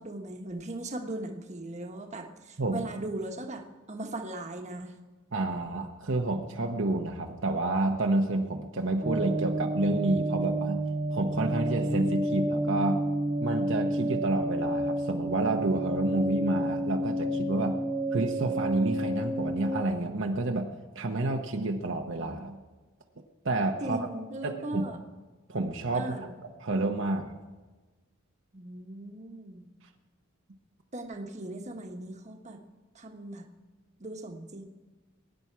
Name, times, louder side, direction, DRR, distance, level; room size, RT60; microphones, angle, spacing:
voice 1, 0.0-4.9 23.8-25.0 25.9-26.3 28.5-29.7 30.9-32.6 32.9-33.5 34.0-34.6, right 1 dB, 35° right, 4 dB, 1.3 m, -38 dB
voice 2, 5.3-10.8 11.1-13.0 13.4-17.8 18.1-20.7 20.9-22.6 23.4-24.1 24.4-24.8 25.5-26.1 26.6-27.4, right 2 dB, 60° right, 3 dB, 1.0 m, -29 dB
sound 1, 9.0-19.8, right 1 dB, 20° right, 1.0 m, -30 dB
22.0 x 9.9 x 4.7 m, 1.3 s
head